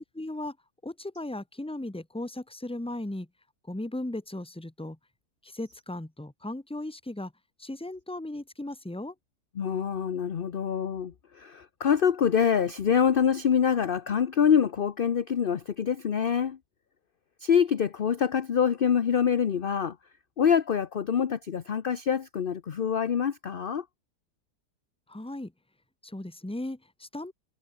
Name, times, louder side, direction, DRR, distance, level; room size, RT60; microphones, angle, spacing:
voice 1, 0.1-0.6 0.8-3.3 3.6-5.0 5.4-7.3 7.6-9.1 25.1-25.5 26.0-27.3, left 1 dB, 5° left, 1.3 m, -36 dB
voice 2, 9.6-16.6 17.4-19.9 20.4-23.8, left 7 dB, 45° left, 0.8 m, -25 dB
omnidirectional pair, 1.7 m